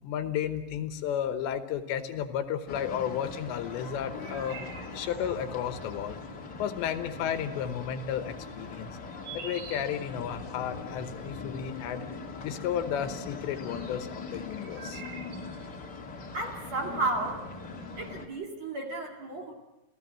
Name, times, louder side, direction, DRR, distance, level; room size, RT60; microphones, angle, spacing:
voice 1, 0.0-4.6 4.9-6.2 6.6-8.9 9.3-12.0 12.4-15.0, left 9 dB, 80° left, 8 dB, 3.2 m, -33 dB
sound 1, 1.4-18.0, right 5 dB, 70° right, 4.1 m, -52 dB
sound 2, 2.7-18.3, left 4 dB, 40° left, 1.5 m, -41 dB
voice 2, 16.3-17.4 18.0-19.5, right 2 dB, 45° right, 1 dB, 2.9 m, -33 dB
28.0 x 16.5 x 7.5 m, 1.0 s
omnidirectional pair, 5.3 m